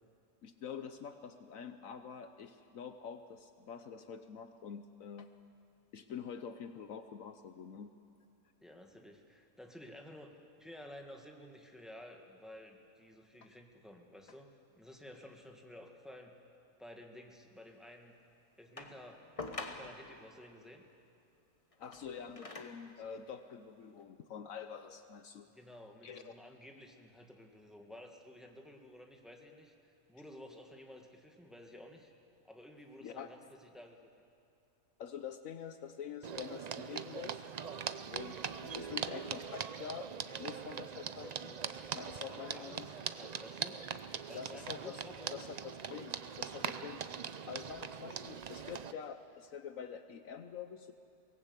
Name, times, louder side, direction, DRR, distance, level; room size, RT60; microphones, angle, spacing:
voice 1, 0.4-5.3 5.9-7.9 13.3-13.5 21.8-25.5 26.0-26.3 33.0-33.5 35.0-37.4 38.1-40.1 40.4-41.6 41.9-42.9 44.3-45.0 45.3-47.0 47.5-50.9, left 7 dB, 70° left, 9 dB, 1.2 m, -46 dB
voice 2, 8.6-14.5 14.8-16.3 16.8-18.2 18.6-19.2 19.7-20.9 25.5-29.7 30.1-32.1 32.4-34.0 42.3-43.8 44.3-45.4, left 1 dB, ahead, 2 dB, 1.7 m, -53 dB
sound 1, 18.8-20.2 21.7-22.9 23.7-23.8, left 3 dB, 25° left, 1.3 m, -46 dB
sound 2, 36.2-48.9, right 7 dB, 65° right, 0.4 m, -42 dB
23.5 x 18.5 x 8.1 m, 2.5 s
omnidirectional pair, 1.5 m